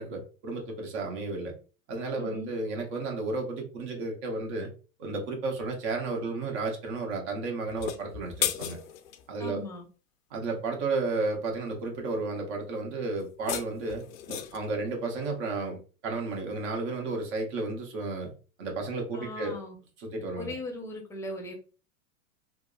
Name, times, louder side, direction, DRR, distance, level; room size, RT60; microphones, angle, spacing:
voice 1, 0.0-1.5 1.9-4.7 5.0-8.8 9.3-9.6 10.3-14.0 14.3-18.3 18.6-19.6 20.0-20.5, right 3 dB, 60° right, 2 dB, 1.1 m, -32 dB
voice 2, 2.2-2.5 9.4-9.9 19.1-19.8 20.4-21.5, left 1 dB, 5° left, 2 dB, 0.6 m, -38 dB
sound 1, 7.7-9.2 13.2-14.7, left 10 dB, 75° left, 0.5 m, -34 dB
3.3 x 2.0 x 2.3 m, 0.37 s
hypercardioid pair, 105°, 40 cm